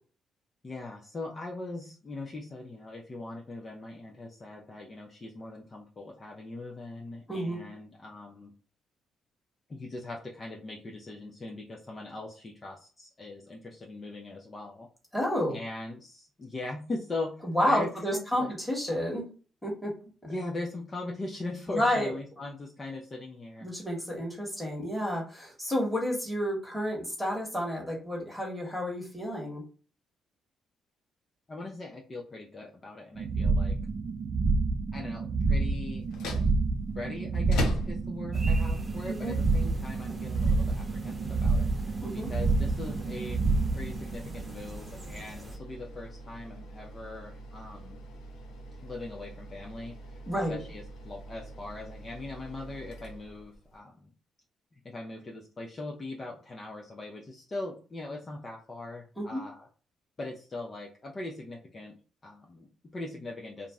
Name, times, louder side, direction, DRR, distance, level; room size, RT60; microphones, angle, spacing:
voice 1, 0.6-8.5 9.7-14.9 15.5-18.5 20.2-23.7 31.5-33.7 34.9-36.1 37.0-48.0 48.8-50.2 50.5-54.1 54.7-59.7 60.2-62.0 62.2-63.7, left 2 dB, 30° left, -1 dB, 0.5 m, -40 dB
voice 2, 7.3-7.6 15.1-15.6 17.4-19.3 19.6-19.9 21.7-22.1 23.6-29.6 39.1-39.4 42.0-42.3 50.3-50.6 59.2-59.4, equal, ahead, -1 dB, 1.2 m, -30 dB
sound 1, 33.2-44.9, right 3 dB, 55° right, 0.4 m, -28 dB
sound 2, 36.0-53.8, equal, 85° left, 0.5 m, -42 dB
sound 3, 38.3-45.6, right 1 dB, 15° right, 0.8 m, -45 dB
2.5 x 2.0 x 3.4 m, 0.38 s
cardioid pair, 90°, 0 cm